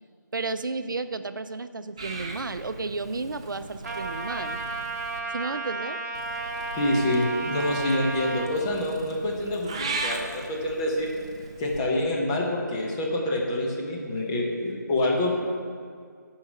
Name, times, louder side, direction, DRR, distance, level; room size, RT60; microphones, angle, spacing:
voice 1, 0.3-4.6 5.3-6.0, right 3 dB, 80° right, 10 dB, 0.5 m, -32 dB
Purr / Meow, 2.0-5.2 6.1-11.8, right 3 dB, 15° right, 0.3 m, -38 dB
Trumpet, 3.8-8.5, right 3 dB, 50° right, 1.3 m, -33 dB
voice 2, 6.8-11.1 11.6-15.3, left 1 dB, 15° left, -2 dB, 0.8 m, -26 dB
10.5 x 4.9 x 5.4 m, 2.1 s
figure-of-eight pair, 160°, 11 cm